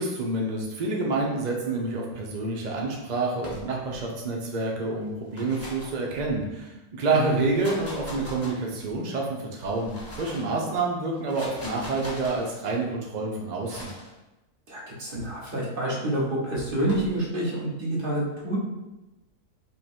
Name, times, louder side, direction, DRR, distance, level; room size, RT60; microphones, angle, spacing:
voice 1, 0.0-13.9, right 3 dB, 70° right, -1 dB, 0.4 m, -28 dB
sound 1, 3.4-4.0 5.1-6.6 7.3-9.0 9.6-10.5 11.1-12.5 13.6-14.1 15.1-15.5 16.5-17.1, left 1 dB, 10° left, 1.0 m, -41 dB
voice 2, 14.7-18.6, right 1 dB, 35° right, -5 dB, 1.3 m, -28 dB
5.3 x 2.2 x 4.4 m, 1.0 s
omnidirectional pair, 1.6 m